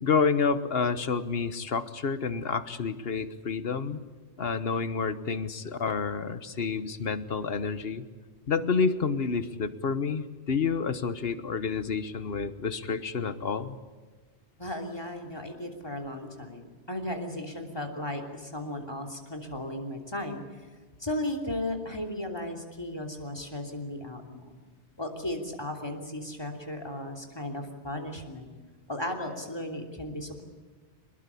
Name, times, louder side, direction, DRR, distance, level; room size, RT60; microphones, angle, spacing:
voice 1, 0.0-4.0 4.4-8.0 8.5-13.8, left 5 dB, 60° left, 13 dB, 1.3 m, -29 dB
voice 2, 14.6-16.6 16.9-20.4 21.0-24.6 25.0-28.5 28.9-30.4, left 1 dB, 20° left, 3 dB, 3.1 m, -35 dB
24.0 x 20.5 x 8.4 m, 1.4 s
omnidirectional pair, 1.1 m